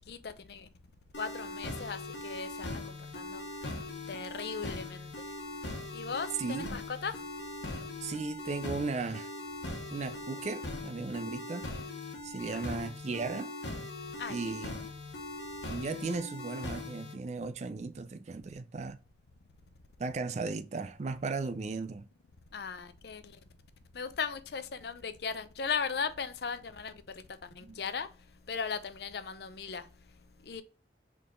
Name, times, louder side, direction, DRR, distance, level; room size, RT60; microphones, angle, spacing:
voice 1, 0.1-0.7 1.2-3.4 4.1-5.1 5.9-7.2 12.5-12.8 14.2-14.4 22.5-23.2 23.9-26.9 27.4-28.1 28.5-29.9 30.5-30.6, left 5 dB, 60° left, 0.5 m, -37 dB
sound 1, 1.1-17.1, left 2 dB, 75° left, 1.2 m, -41 dB
voice 2, 6.4-6.8 8.0-9.3 9.9-11.7 12.2-13.5 14.3-14.8 15.7-19.0 20.0-22.0 27.6-27.8, right 4 dB, 40° right, 0.4 m, -36 dB
4.5 x 3.7 x 3.1 m
head